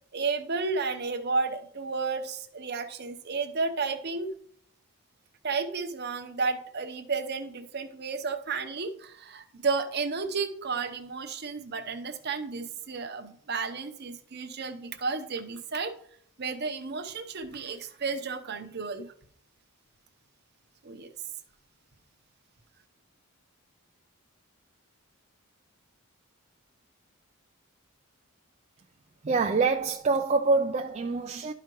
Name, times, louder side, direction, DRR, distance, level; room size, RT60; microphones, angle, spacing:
voice 1, 0.1-4.3 5.4-15.9 16.4-19.1 20.8-21.1, right 4 dB, 50° right, 0.8 m, -32 dB
voice 2, 29.2-31.5, right 4 dB, 30° right, 0.4 m, -25 dB
12.0 x 5.0 x 3.0 m
head